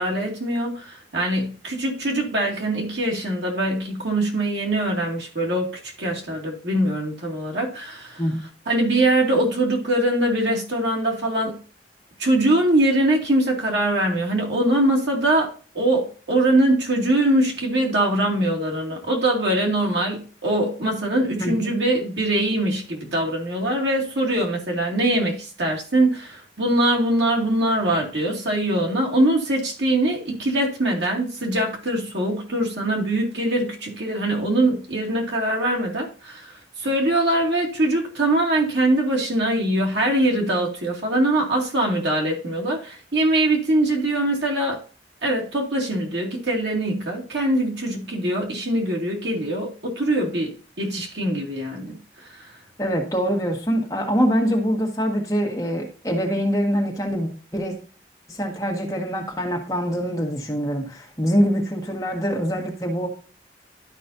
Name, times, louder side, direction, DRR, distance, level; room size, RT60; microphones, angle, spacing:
voice 1, 0.0-8.2 8.7-11.6 12.2-44.8 45.2-52.5, right 1 dB, 80° right, 2.3 m, -22 dB
voice 2, 21.4-21.7 52.8-57.8 58.3-63.1, equal, 20° left, 1.7 m, -24 dB
12.0 x 5.3 x 2.7 m
head